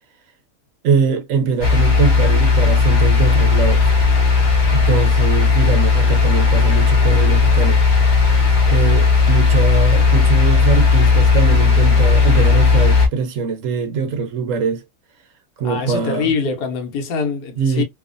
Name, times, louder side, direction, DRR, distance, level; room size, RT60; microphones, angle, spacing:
voice 1, 0.8-3.9 4.7-7.8 8.6-14.8 15.6-16.3 17.6-17.8, right 5 dB, 65° right, 0.9 m, -22 dB
sound 1, 1.6-13.1, left 4 dB, 45° left, 0.6 m, -14 dB
voice 2, 15.6-17.8, left 5 dB, 85° left, 1.2 m, -23 dB
2.7 x 2.4 x 2.4 m
omnidirectional pair, 1.7 m